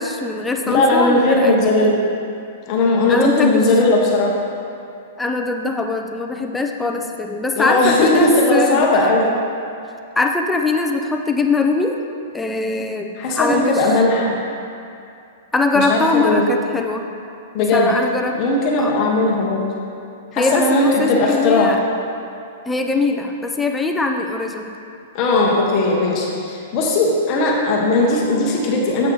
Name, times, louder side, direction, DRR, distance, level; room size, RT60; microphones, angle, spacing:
voice 1, 0.0-2.0 3.1-3.6 5.2-9.1 10.2-12.0 12.3-13.9 15.5-17.1 17.6-18.4 18.8-18.9 20.4-21.8 22.7-24.8, left 3 dB, 5° left, 3 dB, 0.3 m, -21 dB
voice 2, 0.7-2.0 2.7-4.3 7.6-9.3 13.2-14.4 15.7-16.5 17.5-17.9 18.3-19.7 20.3-21.7 25.1-29.1, left 2 dB, 25° left, -2 dB, 0.8 m, -17 dB
7.6 x 6.3 x 3.7 m, 2.6 s
hypercardioid pair, 175°, 0 cm